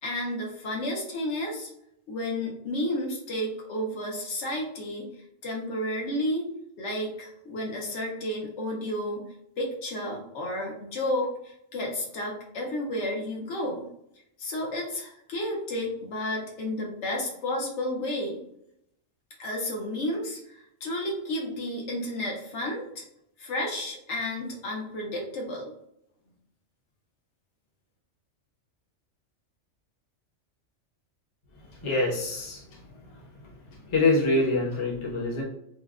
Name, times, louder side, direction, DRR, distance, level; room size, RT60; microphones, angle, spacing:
voice 1, 0.0-1.7 2.1-5.1 5.4-9.3 9.6-13.9 14.4-18.4 19.4-23.0 23.4-25.7, left 1 dB, 70° left, -2 dB, 1.0 m, -32 dB
voice 2, 31.7-32.8 33.4-33.5 33.8-35.4, left 2 dB, 30° left, -4 dB, 0.6 m, -25 dB
3.3 x 2.1 x 2.3 m, 0.77 s
omnidirectional pair, 1.3 m